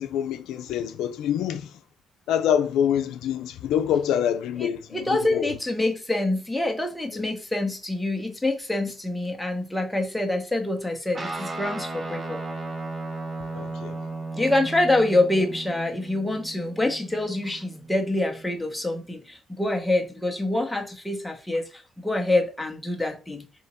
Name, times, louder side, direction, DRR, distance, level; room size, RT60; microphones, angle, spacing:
voice 1, 0.0-1.7 2.3-5.5 7.2-7.3 13.5-14.0, left 9 dB, 85° left, 0.4 m, -26 dB
voice 2, 4.6-12.4 14.3-23.4, left 2 dB, 5° left, 0.9 m, -26 dB
Guitar, 11.1-18.8, right 3 dB, 30° right, 0.9 m, -36 dB
3.5 x 3.0 x 4.2 m
cardioid pair, 90°, 0 cm